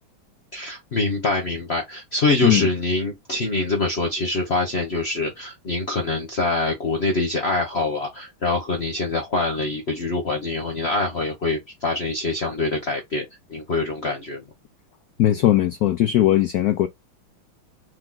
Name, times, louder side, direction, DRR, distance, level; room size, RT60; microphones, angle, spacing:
voice 1, 0.5-14.4, left 2 dB, 45° left, 0.9 m, -25 dB
voice 2, 15.2-16.9, left 13 dB, 80° left, 0.8 m, -18 dB
4.6 x 3.0 x 3.7 m
omnidirectional pair, 2.2 m